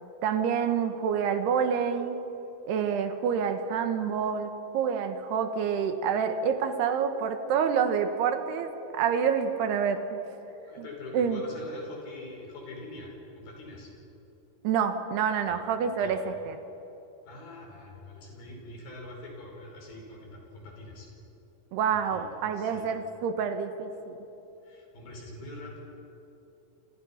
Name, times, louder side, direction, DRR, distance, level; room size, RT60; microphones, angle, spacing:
voice 1, 0.2-2.2 2.7-10.2 11.1-11.4 14.6-16.6 21.7-24.2, right 7 dB, 90° right, 7 dB, 3.6 m, -27 dB
voice 2, 10.6-13.9 15.5-15.6 16.0-16.2 17.3-21.1 21.9-22.9 24.6-25.8, left 2 dB, 65° left, 0 dB, 7.0 m, -44 dB
30.0 x 26.0 x 5.8 m, 3.0 s
omnidirectional pair, 4.5 m